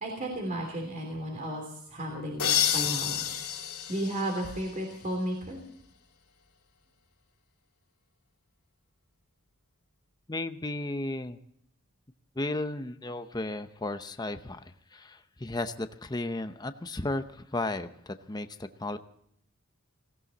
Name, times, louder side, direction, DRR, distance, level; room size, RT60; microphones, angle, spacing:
voice 1, 0.0-3.2 3.9-5.6, right 1 dB, 35° right, 1 dB, 3.1 m, -33 dB
sound 1, 2.4-5.1, left 10 dB, 90° left, 2.7 m, -30 dB
voice 2, 10.3-11.4 12.4-14.6 14.9-19.0, left 2 dB, 20° left, 9 dB, 0.7 m, -34 dB
19.0 x 17.0 x 4.1 m, 0.72 s
head